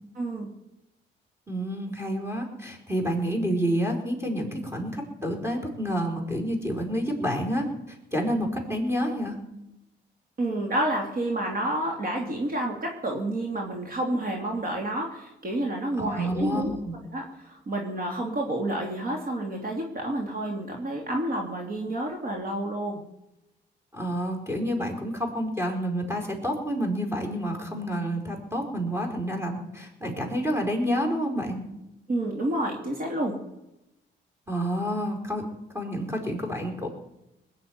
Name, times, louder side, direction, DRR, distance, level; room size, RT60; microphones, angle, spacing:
voice 1, 0.1-0.5 10.4-16.7 17.1-23.0 32.1-33.4, right 1 dB, 50° right, 0 dB, 2.9 m, -29 dB
voice 2, 1.5-7.7 8.1-9.4 16.0-16.9 23.9-31.7 34.5-35.5 35.7-36.9, equal, 15° right, 2 dB, 4.7 m, -29 dB
20.5 x 6.8 x 9.5 m, 0.91 s
cardioid pair, 90°, 20 cm